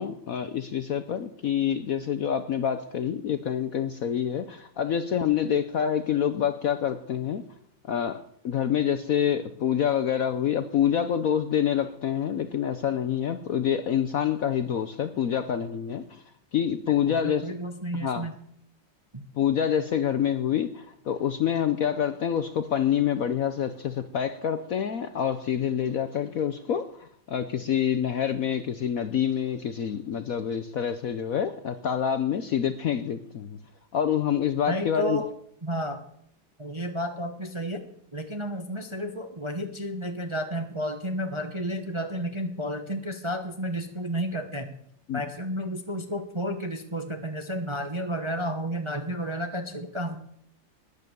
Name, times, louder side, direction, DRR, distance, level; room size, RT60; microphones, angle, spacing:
voice 1, 0.0-7.4 7.8-16.2 16.5-17.5 17.9-18.3 19.4-33.6 33.9-35.2 45.1-45.2, left 9 dB, 60° left, 9 dB, 0.9 m, -27 dB
voice 2, 16.9-18.3 19.1-19.2 34.7-35.3 35.6-36.0 36.6-37.8 38.1-44.7 45.1-50.2, equal, 25° right, 6 dB, 0.7 m, -32 dB
13.0 x 10.0 x 6.8 m, 0.68 s
omnidirectional pair, 2.1 m